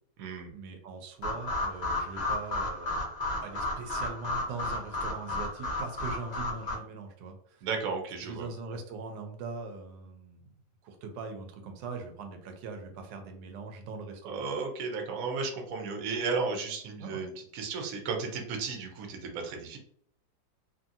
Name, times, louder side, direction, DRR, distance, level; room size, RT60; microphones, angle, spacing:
voice 1, 0.5-3.0 3.4-7.7 8.2-10.5 10.8-14.4 17.0-17.2, right 4 dB, 85° right, 5 dB, 1.3 m, -41 dB
sound 1, 1.2-6.7, left 2 dB, 75° left, 0.4 m, -33 dB
voice 2, 7.6-8.5 14.2-19.8, right 4 dB, 60° right, 2 dB, 1.0 m, -34 dB
2.7 x 2.7 x 2.6 m, 0.65 s
omnidirectional pair, 1.9 m